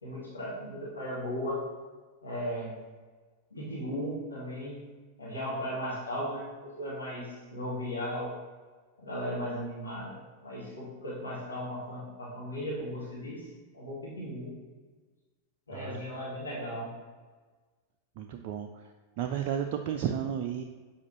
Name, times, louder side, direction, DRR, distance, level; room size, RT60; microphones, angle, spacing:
voice 1, 0.0-1.6 2.2-2.7 3.5-4.8 5.2-8.3 9.0-10.1 10.4-13.5 13.7-14.5 15.7-16.9, equal, 75° left, -6 dB, 1.7 m, -36 dB
voice 2, 15.7-16.0 18.2-20.6, right 9 dB, 45° right, 4 dB, 0.3 m, -33 dB
7.2 x 4.9 x 2.8 m, 1.4 s
figure-of-eight pair, 90°, 0 cm